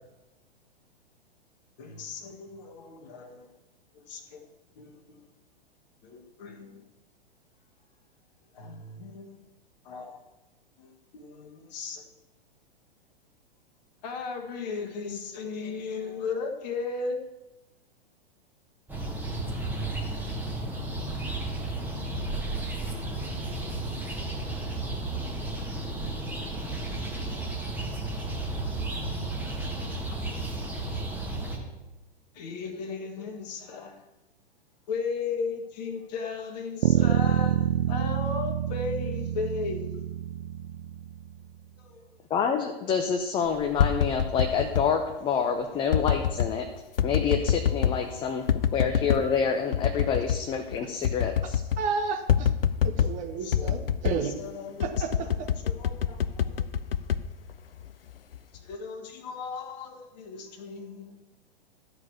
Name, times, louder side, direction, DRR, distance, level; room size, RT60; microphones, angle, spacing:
voice 1, 1.8-3.5 3.9-4.5 4.7-5.2 6.0-6.9 8.5-9.4 9.8-10.2 10.8-12.0 14.0-17.2 32.3-34.0 34.9-40.0 41.8-42.0 47.9-48.9 53.4-53.9 54.2-56.7 58.5-61.2, left 4 dB, 45° left, 1.5 m, -36 dB
sound 1, 18.9-31.6, right 2 dB, 5° right, 1.6 m, -33 dB
Bass guitar, 36.8-41.3, right 10 dB, 45° right, 0.4 m, -27 dB
voice 2, 42.3-46.7 47.0-48.4 48.7-51.6, left 6 dB, 15° left, 0.6 m, -27 dB
sound 2, 43.5-44.9 45.9-46.5 47.0-48.0 48.5-49.3 49.7-50.4 50.7-50.8 51.0-51.9 52.3-53.2 53.5-54.3 54.8-57.9 58.3-58.7, left 9 dB, 65° left, 0.5 m, -26 dB
voice 3, 51.8-52.5 52.8-54.3 54.8-55.5, right 5 dB, 25° right, 1.0 m, -32 dB
12.5 x 4.8 x 7.1 m
figure-of-eight pair, 105°, 31 cm